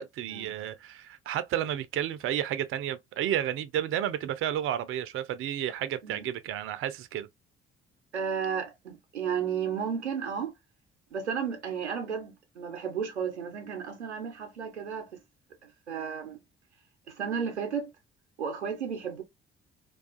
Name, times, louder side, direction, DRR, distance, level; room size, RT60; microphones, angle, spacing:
voice 1, 0.0-7.3, right 11 dB, 40° right, 0.4 m, -31 dB
voice 2, 8.1-10.5 11.1-15.2 15.6-16.4 17.1-17.9 18.4-19.2, right 7 dB, 90° right, 0.5 m, -33 dB
2.3 x 2.3 x 2.4 m
figure-of-eight pair, 40°, 33 cm